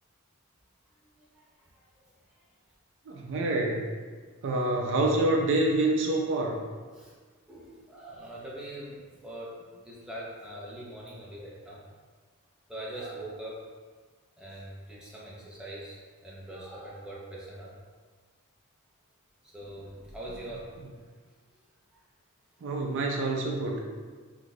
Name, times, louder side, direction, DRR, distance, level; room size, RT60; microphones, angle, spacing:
voice 1, 3.1-3.9 4.4-6.6 22.6-23.8, right 2 dB, 60° right, 0 dB, 0.4 m, -27 dB
voice 2, 7.5-11.8 12.7-13.6 14.4-17.7 19.5-20.7, right 1 dB, 5° right, -6 dB, 0.6 m, -42 dB
2.6 x 2.3 x 3.9 m, 1.5 s
head